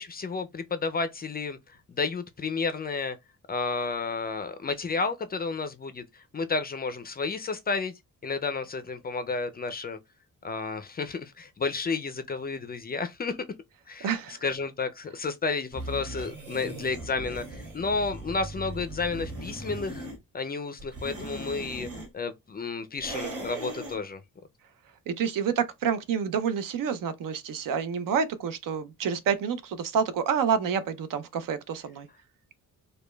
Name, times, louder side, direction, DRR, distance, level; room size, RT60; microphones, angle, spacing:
voice 1, 0.0-3.2 3.5-7.9 8.2-10.0 10.4-13.4 13.9-20.1 20.3-21.9 22.1-24.2, left 4 dB, 30° left, 0.4 m, -31 dB
voice 2, 14.0-14.4 25.1-32.1, right 7 dB, 70° right, 0.6 m, -28 dB
sound 1, 15.7-20.2 20.8-22.1 23.0-24.0, right 1 dB, 45° right, 2.4 m, -38 dB
4.9 x 2.2 x 2.2 m
wide cardioid pair, 140°, 34 cm